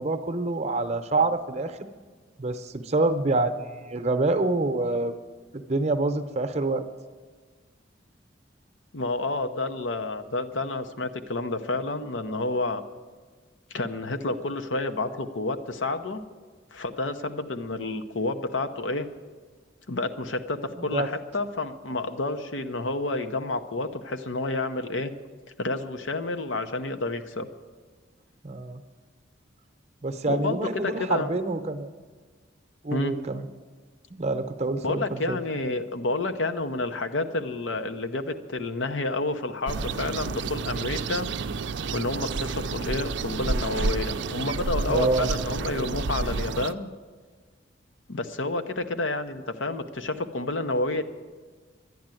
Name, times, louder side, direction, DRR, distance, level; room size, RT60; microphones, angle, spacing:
voice 1, 0.0-1.8 2.4-5.1 5.5-6.8 20.8-21.1 28.4-28.8 30.0-31.9 32.8-33.5 34.1-35.4 44.9-45.3, right 2 dB, 35° right, 8 dB, 0.7 m, -26 dB
voice 2, 8.9-12.8 13.7-16.2 16.7-19.1 19.9-25.1 25.6-27.5 30.3-31.3 32.9-33.3 34.8-41.3 41.9-46.9 48.1-51.0, left 2 dB, 80° left, 8 dB, 0.8 m, -29 dB
sound 1, 39.7-46.7, right 4 dB, 70° right, 0.5 m, -30 dB
11.0 x 10.5 x 9.0 m, 1.5 s
head